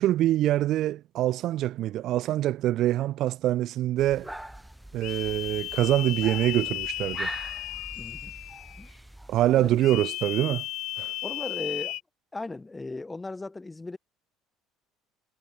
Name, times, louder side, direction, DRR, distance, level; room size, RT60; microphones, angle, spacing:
voice 1, 0.0-4.3 4.9-7.3 9.3-10.6 11.0-11.1, right 14 dB, 55° right, 0.6 m, -25 dB
sound 1, 4.0-10.0, right 1 dB, 5° right, 1.4 m, -42 dB
sound 2, 5.0-8.9 9.8-12.0, left 17 dB, 65° left, 0.5 m, -35 dB
voice 2, 8.0-8.3 8.8-8.9 9.5-10.2 11.2-12.0 12.3-14.0, left 3 dB, 15° left, 0.9 m, -37 dB
cardioid pair, 130°, 0 cm